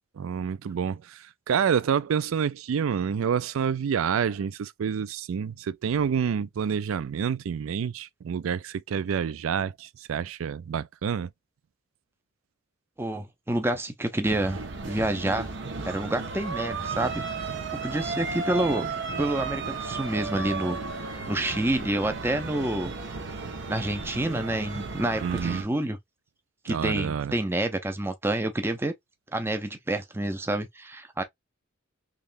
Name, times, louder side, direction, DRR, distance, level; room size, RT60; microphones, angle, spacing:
voice 1, 0.2-11.3 25.2-25.6 26.7-27.3, right 7 dB, 75° right, 0.4 m, -28 dB
voice 2, 13.0-14.6 14.9-15.5 15.8-17.2 17.8-18.9 19.2-22.9 23.7-26.0 26.6-28.9 29.3-31.2, right 1 dB, 10° right, 0.5 m, -28 dB
sound 1, 14.2-25.6, right 4 dB, 55° right, 0.9 m, -34 dB
3.6 x 3.1 x 2.5 m
head